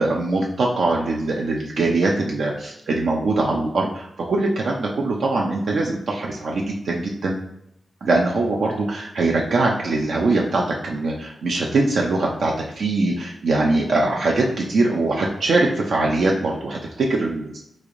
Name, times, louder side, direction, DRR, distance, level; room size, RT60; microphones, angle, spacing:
voice 1, 0.0-7.3 8.0-17.6, right 2 dB, 80° right, -1 dB, 0.5 m, -22 dB
3.2 x 2.5 x 3.7 m, 0.77 s
cardioid pair, 75°, 0 cm